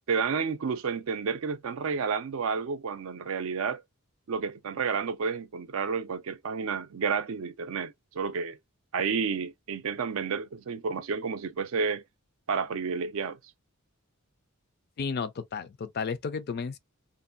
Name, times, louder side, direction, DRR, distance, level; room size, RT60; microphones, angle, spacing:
voice 1, 0.1-3.8 4.3-8.6 8.9-12.0 12.5-13.4, right 5 dB, 65° right, 0.4 m, -30 dB
voice 2, 15.0-16.8, left 5 dB, 45° left, 0.4 m, -33 dB
2.6 x 2.2 x 2.5 m
head